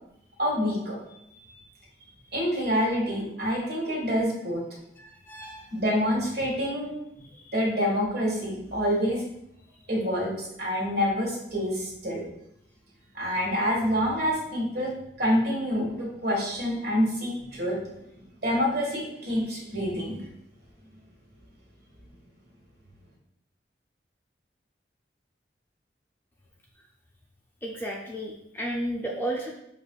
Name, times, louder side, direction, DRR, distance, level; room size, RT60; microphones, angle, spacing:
voice 1, 0.4-1.0 1.3-1.6 2.3-4.6 5.7-7.0 7.5-9.3 9.9-12.2 13.1-14.9 15.2-17.8 18.4-20.2, equal, 60° right, -3 dB, 1.5 m, -27 dB
voice 2, 5.0-5.7 7.3-7.5 27.6-29.5, right 1 dB, 10° left, -1 dB, 0.4 m, -33 dB
6.7 x 2.5 x 2.2 m, 0.78 s
head